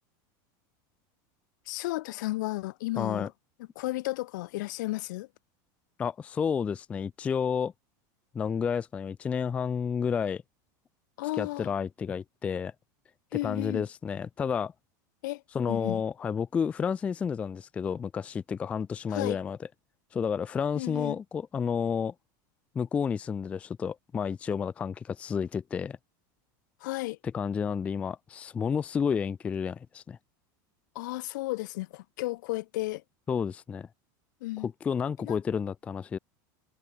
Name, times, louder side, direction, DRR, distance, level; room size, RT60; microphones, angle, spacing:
voice 1, 1.7-3.3 3.8-5.3 11.2-11.7 13.3-13.8 15.2-15.4 15.7-16.0 19.1-19.4 20.8-21.2 26.8-27.2 30.9-33.0 34.4-34.7 35.2-35.4, left 19 dB, 70° left, 1.1 m, -33 dB
voice 2, 3.0-3.3 6.0-7.7 8.3-10.4 11.4-12.7 13.4-14.7 15.5-19.6 20.1-22.1 22.8-26.0 27.3-30.2 33.3-33.9 34.6-36.2, left 6 dB, 10° left, 0.3 m, -31 dB
supercardioid pair, 170°, 11 cm